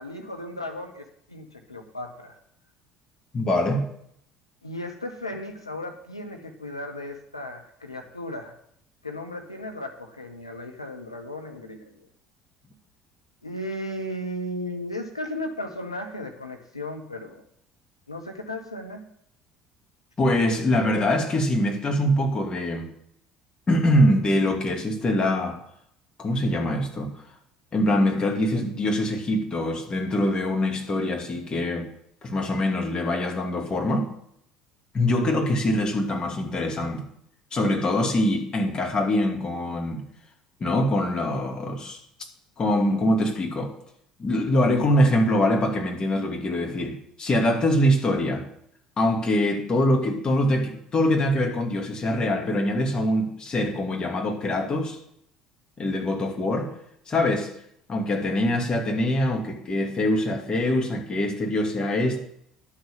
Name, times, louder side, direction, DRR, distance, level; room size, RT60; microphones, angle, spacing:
voice 1, 0.0-2.3 4.6-8.5 9.0-12.1 13.4-17.4 18.1-19.1, left 1 dB, 85° left, 0.9 m, -35 dB
voice 2, 3.3-3.9 20.2-22.9 23.7-25.6 26.2-27.1 27.7-31.9 32.2-34.1 34.9-37.0 37.5-40.0 40.6-42.0 42.6-43.7 44.2-48.5 49.0-55.0 55.8-56.7 57.1-57.5 57.9-62.2, left 1 dB, 30° left, 2.5 m, -23 dB
11.5 x 6.5 x 7.5 m
figure-of-eight pair, 60°, 3 cm